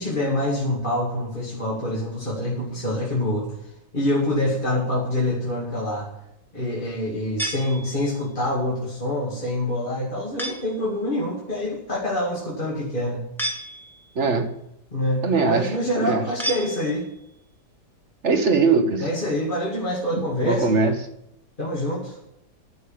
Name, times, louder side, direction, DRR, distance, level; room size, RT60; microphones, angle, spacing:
voice 1, 0.0-3.5 3.9-6.1 6.5-13.3 14.9-17.1 19.0-20.7 21.6-22.2, left 1 dB, 30° left, -4 dB, 2.4 m, -26 dB
sound 1, 7.4-8.3 10.4-10.9 13.4-14.2 16.4-17.3, right 1 dB, ahead, 1.5 m, -32 dB
voice 2, 14.1-14.5 15.2-15.7 16.0-16.2 18.2-19.1 20.4-20.9, right 4 dB, 45° right, 5 dB, 1.5 m, -20 dB
11.5 x 6.5 x 8.8 m, 0.80 s
omnidirectional pair, 1.9 m